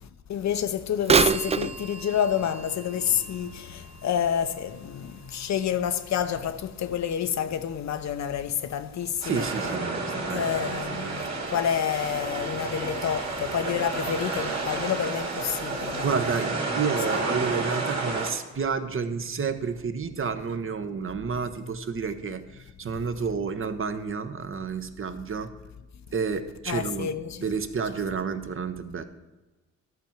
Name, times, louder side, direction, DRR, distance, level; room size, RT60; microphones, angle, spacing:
voice 1, 0.3-9.5 10.3-16.1 17.1-17.2 26.7-27.5, left 9 dB, 60° left, 0.7 m, -29 dB
Bird vocalization bird call bird song / Telephone, 1.0-4.8 5.4-5.5 6.3-6.4 7.0-7.1, right 6 dB, 20° right, 0.3 m, -27 dB
voice 2, 9.2-11.3 16.0-22.4 22.8-25.5 26.1-27.1 27.4-29.0, right 5 dB, 40° right, 1.0 m, -30 dB
sound 1, 9.2-18.3, right 3 dB, 55° right, 2.5 m, -31 dB
12.0 x 4.5 x 7.3 m
supercardioid pair, 60°, 32 cm